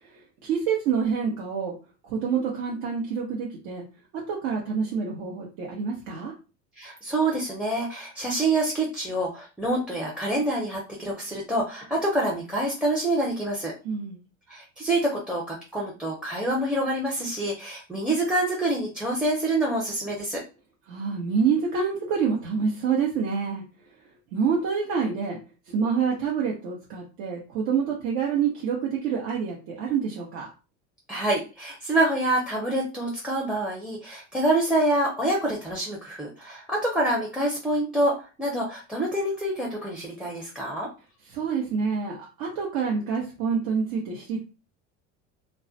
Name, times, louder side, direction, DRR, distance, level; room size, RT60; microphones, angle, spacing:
voice 1, 0.0-1.7 2.0-3.8 4.1-6.3 13.8-14.2 20.9-23.6 24.3-25.4 25.7-30.5 41.3-44.4, right 6 dB, 70° right, -3 dB, 0.8 m, -27 dB
voice 2, 6.8-13.7 14.5-20.4 31.1-40.9, right 1 dB, ahead, -2 dB, 0.5 m, -26 dB
2.3 x 2.1 x 2.6 m, 0.32 s
supercardioid pair, 95°, 39 cm